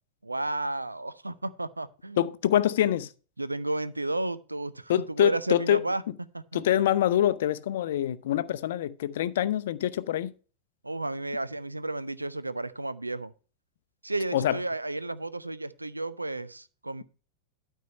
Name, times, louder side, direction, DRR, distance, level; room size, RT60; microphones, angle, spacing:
voice 1, 0.2-2.3 3.4-6.6 10.8-13.3 14.0-17.0, right 2 dB, 85° right, 0.6 m, -32 dB
voice 2, 2.2-3.1 4.9-5.8 6.5-10.3 14.3-14.6, left 12 dB, 55° left, 0.6 m, -25 dB
12.5 x 4.6 x 5.3 m
figure-of-eight pair, 90°, 0 cm